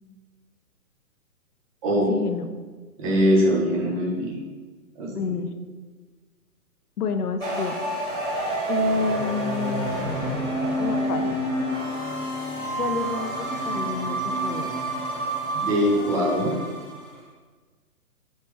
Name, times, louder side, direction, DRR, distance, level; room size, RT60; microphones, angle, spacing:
voice 1, 2.1-2.5 5.1-5.5 7.0-7.7 8.7-10.2 10.8-11.4 12.8-14.7, left 5 dB, 85° left, 8 dB, 0.5 m, -29 dB
voice 2, 3.0-4.3 5.0-5.3 15.5-16.6, equal, 25° right, -4 dB, 0.7 m, -22 dB
sound 1, 7.4-17.0, right 1 dB, 5° left, 0.4 m, -28 dB
3.2 x 3.0 x 3.2 m, 1.4 s
figure-of-eight pair, 125°, 45 cm